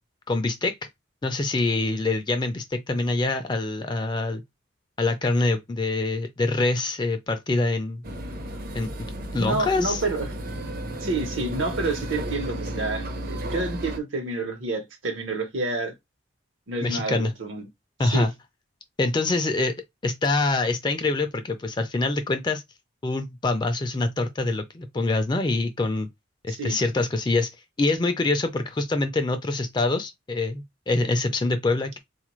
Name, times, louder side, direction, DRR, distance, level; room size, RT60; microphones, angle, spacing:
voice 1, 0.3-0.8 1.2-4.4 5.0-8.0 8.7-9.1 9.3-10.0 16.8-17.3 18.0-18.3 19.0-19.7 20.0-22.6 23.0-26.1 26.4-27.5 27.8-32.0, left 2 dB, 25° left, 0.3 m, -25 dB
sound 1, 8.0-14.0, right 1 dB, 50° right, 0.6 m, -33 dB
voice 2, 9.3-10.3 11.0-15.9 16.7-17.6 18.0-18.3 26.5-26.8, right 2 dB, 75° right, 0.9 m, -29 dB
3.8 x 2.4 x 3.0 m
head